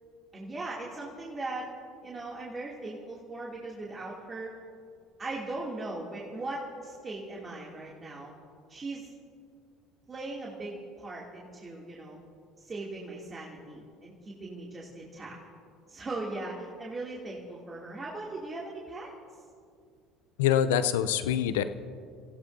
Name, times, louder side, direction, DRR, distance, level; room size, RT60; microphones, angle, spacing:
voice 1, 0.3-1.7 2.0-4.6 5.2-8.3 8.7-9.1 10.1-12.2 12.6-15.4 15.9-19.1, right 2 dB, 30° right, -4 dB, 2.7 m, -39 dB
voice 2, 20.4-21.6, left 9 dB, 80° left, 12 dB, 0.6 m, -25 dB
27.5 x 16.0 x 2.7 m, 2.2 s
hypercardioid pair, 70°, 0 cm